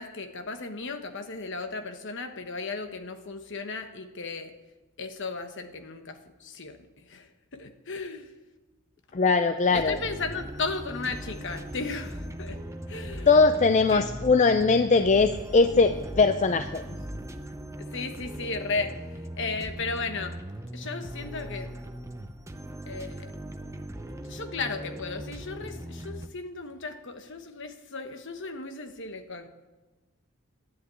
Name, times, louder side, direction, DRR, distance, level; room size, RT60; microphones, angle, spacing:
voice 1, 0.0-4.5 5.0-8.3 9.7-12.6 12.9-13.5 13.9-14.0 17.8-20.4 20.7-21.7 22.9-23.3 24.2-29.5, left 4 dB, 55° left, 7 dB, 1.1 m, -35 dB
voice 2, 9.1-10.0 13.3-16.8, left 4 dB, 30° left, 9 dB, 0.4 m, -21 dB
sound 1, 9.7-26.3, right 1 dB, 15° right, 0.7 m, -40 dB
sound 2, 10.6-17.2, equal, 30° right, 4.8 m, -43 dB
11.0 x 10.5 x 8.2 m, 1.2 s
head